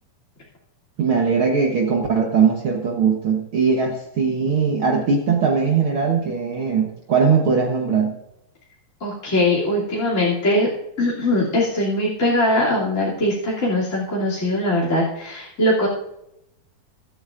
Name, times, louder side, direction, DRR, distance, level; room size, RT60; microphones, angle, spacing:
voice 1, 1.0-8.2, right 5 dB, 75° right, 1 dB, 1.2 m, -20 dB
voice 2, 9.0-10.7 11.0-15.9, left 1 dB, 25° left, -7 dB, 2.7 m, -21 dB
23.0 x 8.6 x 2.5 m, 0.81 s
omnidirectional pair, 4.1 m